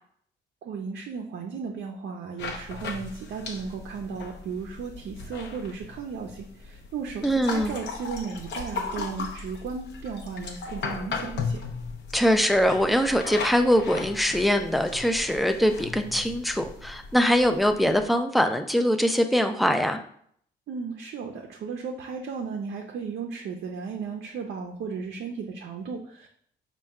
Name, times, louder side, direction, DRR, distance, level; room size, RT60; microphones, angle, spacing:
voice 1, 0.6-11.6 20.7-26.3, right 5 dB, 60° right, 1 dB, 0.5 m, -35 dB
sound 1, 2.4-18.1, left 4 dB, 60° left, 0.6 m, -37 dB
voice 2, 7.2-7.7 12.1-20.0, equal, ahead, 7 dB, 0.3 m, -23 dB
4.3 x 2.2 x 3.5 m, 0.64 s
cardioid pair, 90°, 20 cm